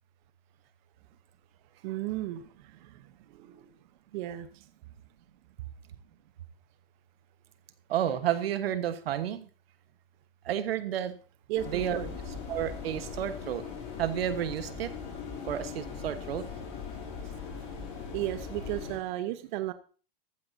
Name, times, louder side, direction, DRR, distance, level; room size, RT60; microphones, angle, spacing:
voice 1, 1.8-2.9 3.3-3.6 4.1-4.5 11.5-12.1 18.1-19.7, right 14 dB, 55° right, 11 dB, 1.0 m, -34 dB
voice 2, 7.9-9.5 10.4-11.2 11.6-12.0 12.5-13.6 14.0-14.9 15.5-16.5, right 10 dB, 85° right, 11 dB, 1.4 m, -31 dB
sound 1, 11.6-19.0, left 5 dB, 45° left, 6.9 m, -40 dB
14.5 x 13.5 x 2.7 m, 0.38 s
supercardioid pair, 135°, 29 cm